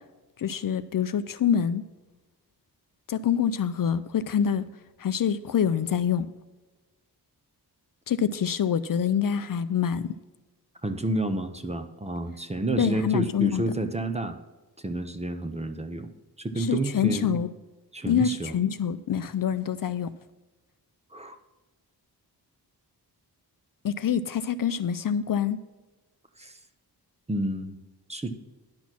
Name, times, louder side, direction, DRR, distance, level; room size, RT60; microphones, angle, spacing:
voice 1, 0.4-1.8 3.1-4.7 5.0-6.3 8.1-10.1 12.8-13.6 16.6-17.5 18.1-20.1 23.8-25.6, left 8 dB, 55° left, 0.5 m, -26 dB
voice 2, 10.8-14.4 14.8-16.1 16.4-17.4 17.9-18.6 21.1-21.4 26.4-26.6 27.3-27.8 28.1-28.3, right 2 dB, 15° right, 0.7 m, -30 dB
10.5 x 6.3 x 5.9 m
wide cardioid pair, 155°, 40 cm